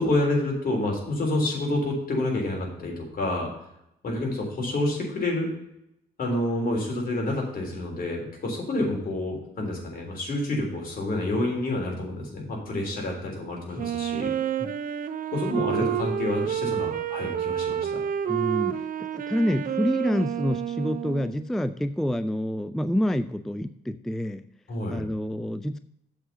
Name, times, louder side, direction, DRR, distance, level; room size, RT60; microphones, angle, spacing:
voice 1, 0.0-3.5 4.0-5.5 6.2-14.3 15.3-18.0 24.7-25.1, left 1 dB, 55° left, 0 dB, 3.6 m, -28 dB
Wind instrument woodwind instrument, 13.8-21.4, right 10 dB, 50° right, 0.7 m, -29 dB
voice 2, 18.3-24.4 24.9-25.8, equal, ahead, 12 dB, 0.3 m, -28 dB
7.4 x 4.8 x 6.8 m, 0.82 s
supercardioid pair, 70°, 18 cm